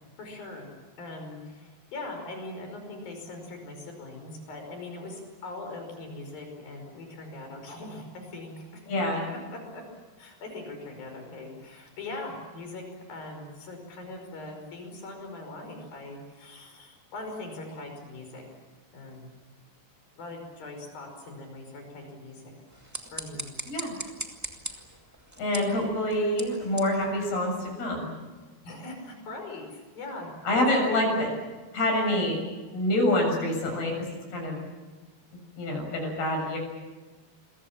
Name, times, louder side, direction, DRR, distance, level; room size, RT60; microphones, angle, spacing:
voice 1, 0.2-8.8 9.5-9.8 10.2-18.4 18.9-19.3 20.1-22.5 23.1-23.5 28.6-30.3 30.9-31.3, left 2 dB, 65° left, 3 dB, 7.1 m, -41 dB
voice 2, 8.9-9.3 23.7-23.9 25.4-28.1 30.5-31.3 31.7-32.4 32.7-33.9 34.3-34.6 35.6-36.6, left 1 dB, 90° left, 1 dB, 9.2 m, -26 dB
sound 1, 22.7-27.9, right 1 dB, 15° right, 0.6 m, -41 dB
28.5 x 23.5 x 7.4 m, 1.3 s
omnidirectional pair, 4.4 m